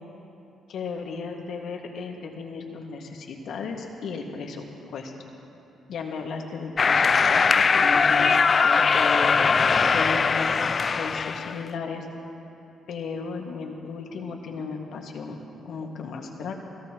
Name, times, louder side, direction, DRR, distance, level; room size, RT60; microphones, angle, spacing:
voice 1, 0.7-5.1 5.9-12.1 12.9-15.4 15.6-16.5, left 4 dB, 70° left, 1 dB, 1.9 m, -35 dB
sound 1, 6.8-11.6, left 5 dB, 40° left, 0.3 m, -20 dB
27.5 x 17.5 x 3.0 m, 2.8 s
cardioid pair, 90°, 0 cm